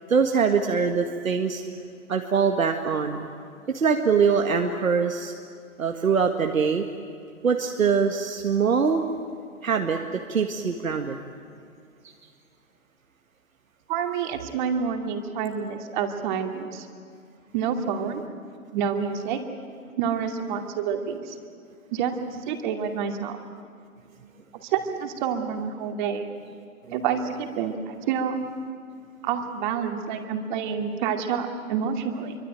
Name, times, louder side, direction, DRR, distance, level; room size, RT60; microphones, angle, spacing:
voice 1, 0.1-1.6 2.1-3.3 3.7-5.3 5.8-6.9 7.4-9.0 9.6-11.2 26.9-27.0, right 6 dB, 70° right, 4 dB, 1.9 m, -23 dB
voice 2, 13.9-16.9 17.5-18.2 18.7-19.4 20.0-21.4 21.9-22.1 22.5-23.4 24.6-26.2 26.9-28.4 29.2-32.4, right 7 dB, 35° right, 5 dB, 2.6 m, -28 dB
25.5 x 24.0 x 9.2 m, 2.3 s
figure-of-eight pair, 130°, 41 cm